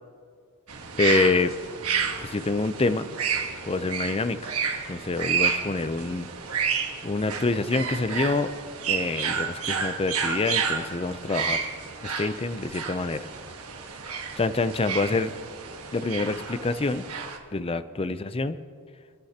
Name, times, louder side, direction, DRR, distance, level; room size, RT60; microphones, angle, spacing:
sound 1, 0.7-17.4, right 6 dB, 75° right, 1.5 m, -31 dB
voice 1, 1.0-1.5 2.2-3.1 3.7-4.5 4.9-6.3 7.0-8.5 8.9-11.7 12.0-13.3 14.4-15.3 15.9-17.0 17.5-18.6, left 3 dB, 25° left, 12 dB, 0.5 m, -26 dB
28.0 x 11.0 x 2.9 m, 2.2 s
head